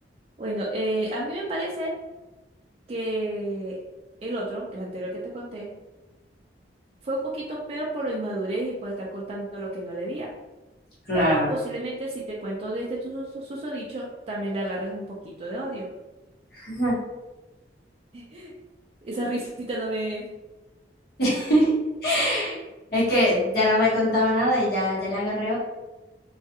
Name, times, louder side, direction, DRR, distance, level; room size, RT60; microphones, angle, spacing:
voice 1, 0.4-1.9 2.9-3.8 4.2-5.7 7.0-10.3 11.1-15.9 18.1-18.5 19.0-20.3, right 1 dB, 35° right, -3 dB, 0.3 m, -31 dB
voice 2, 11.1-11.5 16.5-17.0 21.2-21.7 22.0-22.6 22.9-25.6, equal, 60° left, -8 dB, 1.0 m, -22 dB
2.3 x 2.3 x 2.7 m, 1.1 s
head